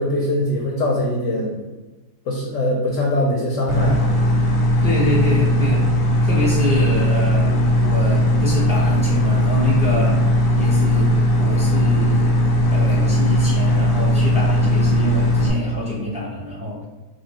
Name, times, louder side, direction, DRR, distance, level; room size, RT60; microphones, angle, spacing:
voice 1, 0.0-1.6 2.3-4.2 9.9-10.0, left 1 dB, 65° left, -1 dB, 0.8 m, -22 dB
sound 1, 3.7-15.5, left 1 dB, 90° left, 1.4 m, -18 dB
voice 2, 4.8-5.8 6.2-10.1 10.5-12.4 12.7-16.8, left 1 dB, 10° right, -7 dB, 0.4 m, -25 dB
3.1 x 2.6 x 4.2 m, 1.2 s
omnidirectional pair, 1.8 m